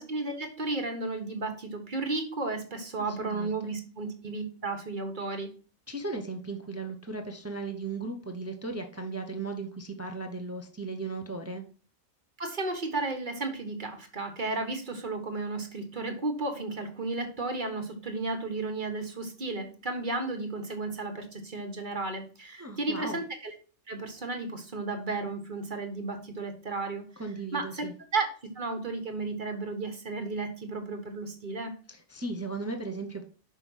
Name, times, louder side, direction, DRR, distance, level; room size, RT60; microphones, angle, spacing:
voice 1, 0.0-5.5 12.4-23.5 23.9-27.0 27.5-27.8 28.1-28.3 28.5-31.7, right 3 dB, 40° right, 4 dB, 1.4 m, -33 dB
voice 2, 3.0-3.7 5.9-11.6 22.6-23.2 27.2-27.9 31.9-33.2, right 3 dB, 15° right, 5 dB, 0.7 m, -36 dB
5.7 x 5.3 x 6.2 m, 0.39 s
omnidirectional pair, 1.4 m